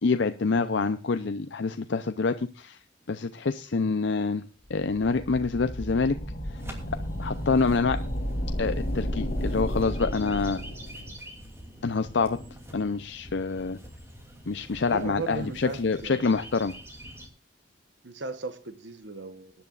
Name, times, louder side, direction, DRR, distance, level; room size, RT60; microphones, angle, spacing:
voice 1, 0.0-2.8 3.1-4.4 4.7-6.2 6.5-6.6 7.2-8.0 8.6-10.6 11.8-12.4 12.7-13.8 14.5-16.7, left 4 dB, 65° left, 0.6 m, -26 dB
sound 1, 4.8-11.2, equal, 45° left, 3.1 m, -32 dB
sound 2, 6.6-17.3, equal, 15° right, 2.8 m, -46 dB
voice 2, 14.9-16.3 18.0-19.5, right 3 dB, 70° right, 1.0 m, -37 dB
22.0 x 10.5 x 2.4 m
head